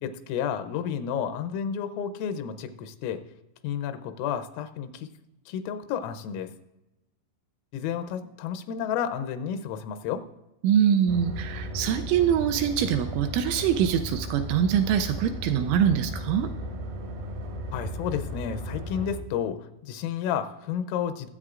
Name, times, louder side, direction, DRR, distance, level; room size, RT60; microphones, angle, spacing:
voice 1, 0.0-3.2 3.6-5.1 5.5-6.5 7.7-10.2 17.7-21.3, left 8 dB, 85° left, 8 dB, 3.4 m, -31 dB
voice 2, 10.6-16.5, right 9 dB, 85° right, 8 dB, 2.7 m, -24 dB
sound 1, 11.1-19.2, equal, 70° right, 2.2 m, -35 dB
22.5 x 8.1 x 2.5 m, 0.95 s
omnidirectional pair, 5.8 m